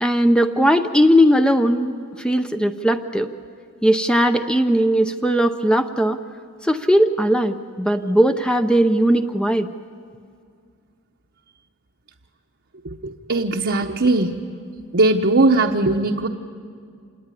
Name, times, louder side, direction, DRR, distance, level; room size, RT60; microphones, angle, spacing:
voice 1, 0.0-3.3 3.8-6.2 6.6-9.7, equal, 5° left, 8 dB, 0.6 m, -18 dB
voice 2, 12.8-14.5 14.9-16.3, right 2 dB, 50° right, 1 dB, 1.0 m, -19 dB
27.0 x 19.0 x 9.9 m, 2.3 s
head